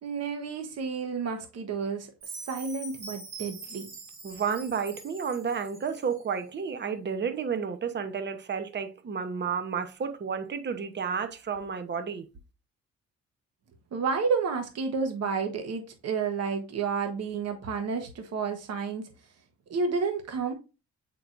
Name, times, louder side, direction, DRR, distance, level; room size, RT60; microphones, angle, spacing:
voice 1, 0.0-3.9 13.9-19.1 19.7-20.5, right 5 dB, 55° right, 1.2 m, -31 dB
Chime, 2.2-6.3, right 3 dB, 90° right, 3.4 m, -44 dB
voice 2, 4.2-12.3, right 6 dB, 35° right, 0.9 m, -31 dB
7.8 x 4.7 x 2.6 m
cardioid pair, 90°, 30 cm